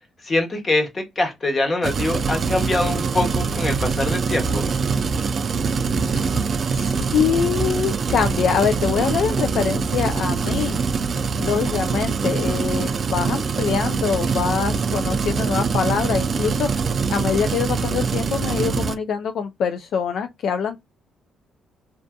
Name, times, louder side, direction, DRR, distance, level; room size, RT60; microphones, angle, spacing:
voice 1, 0.2-4.6, left 2 dB, 35° left, 1.1 m, -23 dB
sound 1, 1.8-18.9, right 5 dB, 45° right, 0.4 m, -23 dB
voice 2, 6.4-10.8 11.4-20.8, left 7 dB, 70° left, 0.3 m, -24 dB
2.6 x 2.3 x 2.2 m
cardioid pair, 90°, 0 cm